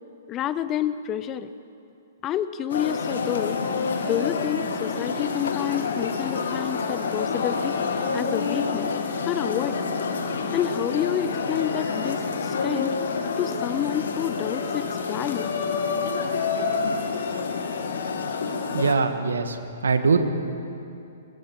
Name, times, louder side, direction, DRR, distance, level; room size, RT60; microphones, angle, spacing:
voice 1, 0.3-1.5 2.2-3.6 4.0-8.9 9.3-9.9 10.5-12.9 13.4-15.5, left 10 dB, 25° left, 14 dB, 0.9 m, -29 dB
sound 1, 2.7-18.9, left 5 dB, 65° left, 2.2 m, -28 dB
voice 2, 18.7-19.6 19.8-20.2, right 5 dB, 75° right, 8 dB, 1.8 m, -21 dB
23.0 x 21.5 x 6.1 m, 2.7 s
figure-of-eight pair, 120°, 0 cm